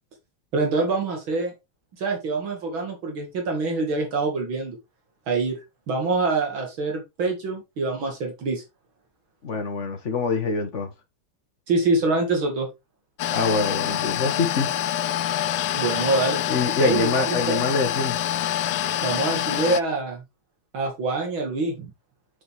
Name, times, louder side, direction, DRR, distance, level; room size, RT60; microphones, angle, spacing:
voice 1, 0.5-1.5 2.0-4.8 5.3-5.6 5.9-8.6 11.7-12.7 15.7-16.4 16.8-17.6 19.0-20.2 20.7-21.9, right 3 dB, 65° right, 2.8 m, -25 dB
voice 2, 9.4-10.9 13.3-14.7 16.5-18.2, left 4 dB, 40° left, 1.4 m, -25 dB
sound 1, 13.2-19.8, left 11 dB, 80° left, 0.9 m, -26 dB
7.0 x 6.6 x 3.5 m
omnidirectional pair, 2.4 m